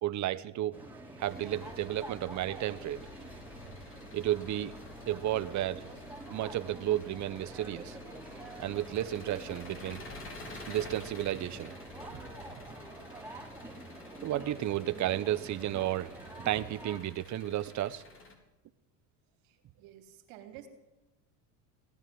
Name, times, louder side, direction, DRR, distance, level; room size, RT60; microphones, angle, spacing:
voice 1, 0.0-0.8 1.2-3.0 4.1-4.7 5.1-5.9 6.3-8.0 8.6-10.0 10.7-11.7 14.2-16.1 16.4-18.0, right 13 dB, 45° right, 15 dB, 1.0 m, -32 dB
sound 1, 0.7-17.0, right 2 dB, 5° right, 3.7 m, -47 dB
Engine, 1.2-18.3, left 3 dB, 30° left, 3.9 m, -51 dB
voice 2, 19.4-20.7, right 11 dB, 75° right, 4 dB, 3.4 m, -51 dB
17.5 x 10.5 x 7.8 m, 1.0 s
supercardioid pair, 100°, 42 cm